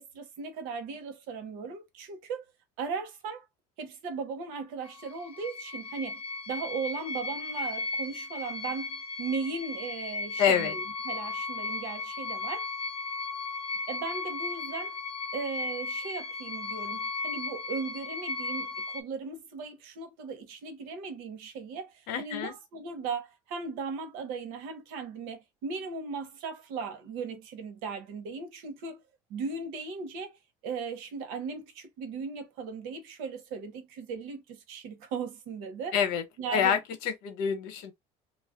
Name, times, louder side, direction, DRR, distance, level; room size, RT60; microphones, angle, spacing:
voice 1, 0.0-2.4 2.8-3.5 3.8-12.7 13.9-15.0 15.3-29.0 29.3-36.0 36.4-36.8, right 5 dB, 80° right, 0.9 m, -37 dB
sound 1, 4.8-19.0, left 3 dB, 40° left, 0.5 m, -36 dB
voice 2, 10.4-10.7 22.1-22.5 35.9-36.2 36.5-37.9, left 8 dB, 85° left, 0.9 m, -27 dB
2.4 x 2.0 x 3.6 m
cardioid pair, 165°, 15 cm